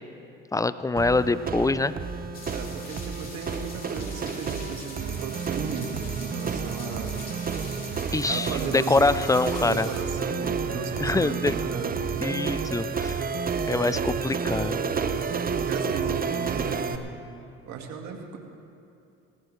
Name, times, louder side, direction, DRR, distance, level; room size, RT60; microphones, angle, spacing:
voice 1, 0.5-1.9 8.1-9.9 11.0-11.5 12.2-13.3 13.7-14.8, left 3 dB, 10° left, 14 dB, 0.5 m, -24 dB
sound 1, 1.0-17.0, right 5 dB, 30° right, 0.8 m, -30 dB
sound 2, 2.3-10.0, left 3 dB, 30° left, 3.7 m, -43 dB
voice 2, 2.5-7.2 8.2-9.3 9.6-12.0 13.8-14.0 14.9-15.2 15.5-17.1 17.7-18.4, right 6 dB, 70° right, 2 dB, 1.9 m, -36 dB
19.5 x 15.0 x 3.3 m, 2.6 s
supercardioid pair, 70°, 29 cm